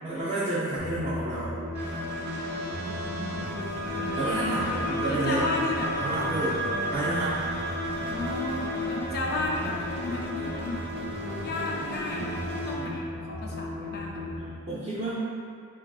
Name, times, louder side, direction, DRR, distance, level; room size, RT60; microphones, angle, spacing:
voice 1, 0.0-1.5 4.2-5.5 6.0-6.6 6.9-7.3 14.7-15.1, right 2 dB, 30° right, -11 dB, 0.5 m, -29 dB
sound 1, 0.8-14.5, left 1 dB, 85° right, 0.9 m, -36 dB
sound 2, 1.7-12.7, equal, 45° right, 1.0 m, -33 dB
voice 2, 3.0-3.7 5.1-5.9 8.1-10.9 11.4-12.3 12.7-14.3, left 3 dB, 45° left, -2 dB, 0.4 m, -34 dB
4.0 x 2.4 x 2.3 m, 2.3 s
head